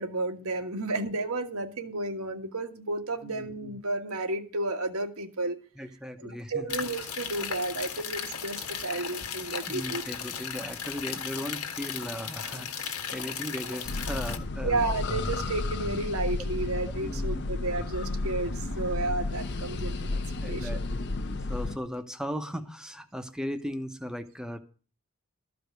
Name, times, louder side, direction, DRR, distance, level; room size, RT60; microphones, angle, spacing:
voice 1, 0.0-5.6 6.2-10.0 14.6-20.8, right 2 dB, 75° right, 5 dB, 1.6 m, -32 dB
voice 2, 5.8-6.6 9.7-14.8 17.0-17.5 20.4-24.6, equal, 5° right, 7 dB, 0.9 m, -37 dB
sound 1, 6.7-14.4, left 7 dB, 90° left, 1.5 m, -36 dB
sound 2, 13.8-21.8, left 2 dB, 55° left, 0.9 m, -32 dB
13.5 x 5.0 x 9.2 m, 0.37 s
head